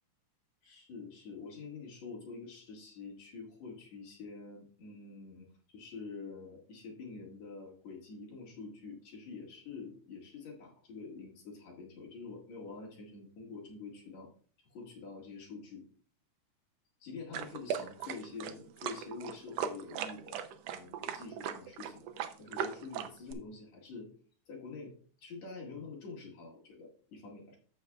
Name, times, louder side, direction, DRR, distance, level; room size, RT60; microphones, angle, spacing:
voice 1, 0.6-14.3 14.7-15.8 17.0-22.0 22.4-24.1 24.5-24.9 25.2-27.6, left 4 dB, 65° left, -2 dB, 3.0 m, -47 dB
sound 1, 17.3-23.3, right 8 dB, 75° right, 1.5 m, -38 dB
14.5 x 6.2 x 2.3 m, 0.43 s
omnidirectional pair, 3.5 m